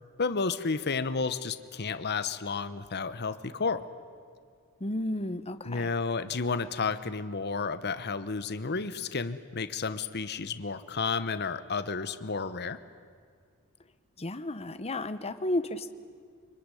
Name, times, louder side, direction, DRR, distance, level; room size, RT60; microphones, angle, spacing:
voice 1, 0.2-3.9 5.6-12.8, left 4 dB, 50° left, 12 dB, 1.1 m, -31 dB
voice 2, 4.8-5.9 14.2-15.9, left 1 dB, 30° left, 11 dB, 1.0 m, -32 dB
25.0 x 24.0 x 10.0 m, 2.2 s
head